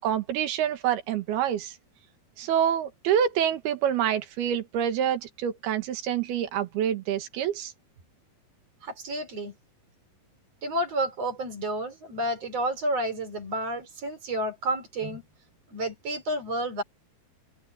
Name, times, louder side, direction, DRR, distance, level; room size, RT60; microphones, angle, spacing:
voice 1, 0.0-1.7 2.4-7.7, right 9 dB, 85° right, 3.5 m, -27 dB
voice 2, 8.8-9.5 10.6-15.2 15.7-16.8, right 1 dB, 40° right, 5.1 m, -30 dB
open air
omnidirectional pair, 4.4 m